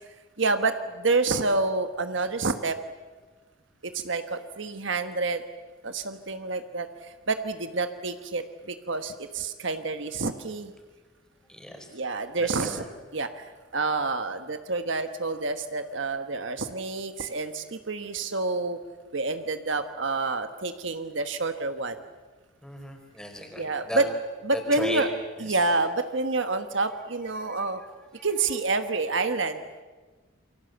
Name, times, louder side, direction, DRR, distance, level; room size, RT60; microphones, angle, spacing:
voice 1, 0.4-2.8 3.8-5.4 5.8-10.7 11.9-12.8 13.1-18.8 19.1-22.0 23.6-24.0 24.4-25.1 25.4-27.8 28.2-29.6, right 3 dB, 65° right, 8 dB, 1.3 m, -28 dB
voice 2, 11.5-11.9 12.4-12.9 22.6-24.1 24.5-25.1 27.4-27.6 28.1-28.3, equal, 5° left, 2 dB, 4.6 m, -36 dB
28.0 x 24.5 x 8.0 m, 1.3 s
head